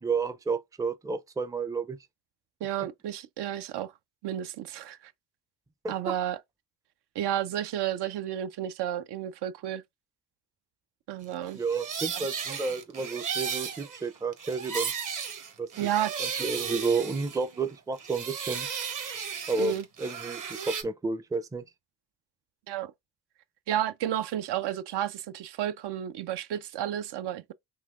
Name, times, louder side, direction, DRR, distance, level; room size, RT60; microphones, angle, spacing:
voice 1, 0.0-2.0 5.8-6.2 11.5-14.9 15.6-15.9 16.2-18.7 19.5-21.6, right 4 dB, 10° right, 0.4 m, -31 dB
voice 2, 2.6-3.9 4.2-5.1 5.9-6.4 7.2-9.8 11.1-11.6 12.1-12.3 15.8-16.1 19.6-19.8 22.7-22.9 23.7-27.5, right 11 dB, 70° right, 0.5 m, -31 dB
sound 1, 11.5-17.7 18.0-20.8, right 6 dB, 45° right, 0.9 m, -35 dB
3.9 x 2.7 x 2.4 m
cardioid pair, 65°, 43 cm